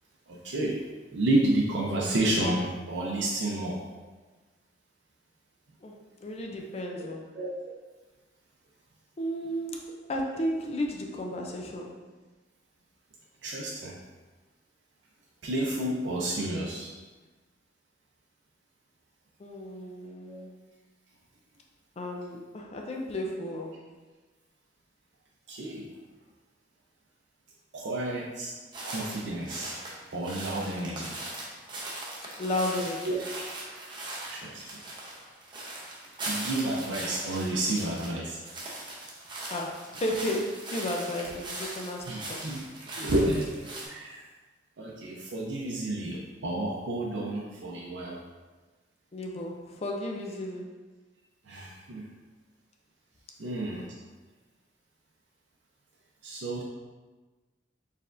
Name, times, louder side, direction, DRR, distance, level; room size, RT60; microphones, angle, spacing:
voice 1, 0.3-0.8 1.1-3.8 7.4-7.5 13.4-14.0 15.4-16.9 20.3-20.4 25.5-25.9 27.7-28.5 28.8-29.8 30.1-31.2 33.0-33.2 34.3-34.8 36.3-38.4 41.3-41.4 42.0-44.2 44.8-48.2 51.4-52.1 53.4-53.9 56.2-56.6, right 1 dB, 75° right, -4 dB, 0.5 m, -30 dB
voice 2, 6.2-7.3 9.2-11.9 19.4-20.5 22.0-23.7 32.4-33.2 39.5-42.4 49.1-50.6, left 1 dB, 35° left, 1 dB, 0.4 m, -33 dB
sound 1, 28.7-38.1 38.4-43.9, right 2 dB, 25° right, 0.7 m, -40 dB
4.5 x 3.4 x 2.5 m, 1.3 s
head